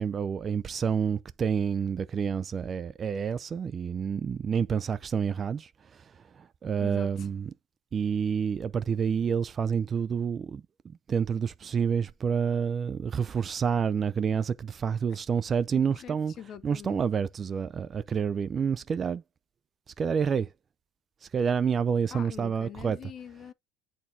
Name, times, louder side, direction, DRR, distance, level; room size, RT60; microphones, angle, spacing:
voice 1, 0.0-7.5 7.9-16.3 16.6-19.2 20.0-20.5 21.2-23.0, right 7 dB, 25° right, 0.5 m, -28 dB
voice 2, 6.8-7.3 15.7-17.0 22.1-23.5, left 9 dB, 35° left, 0.8 m, -44 dB
9.0 x 4.2 x 2.7 m
cardioid pair, 150°, 0 cm